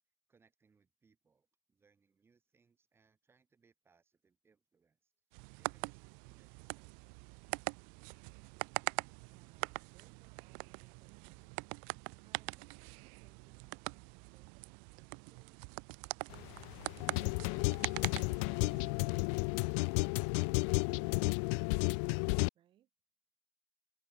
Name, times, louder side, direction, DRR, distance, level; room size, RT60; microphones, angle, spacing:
voice 1, 0.3-5.1 5.6-7.3, right 5 dB, 15° right, 7.4 m, -73 dB
sound 1, 5.3-18.9, right 40 dB or more, 55° right, 0.4 m, -43 dB
voice 2, 9.3-11.8 12.2-15.7 16.3-16.7 17.0-21.9 22.5-22.9, right 12 dB, 30° right, 3.9 m, -68 dB
sound 2, 16.3-22.5, left 36 dB, 60° left, 0.4 m, -33 dB
cardioid pair, 180°, 17 cm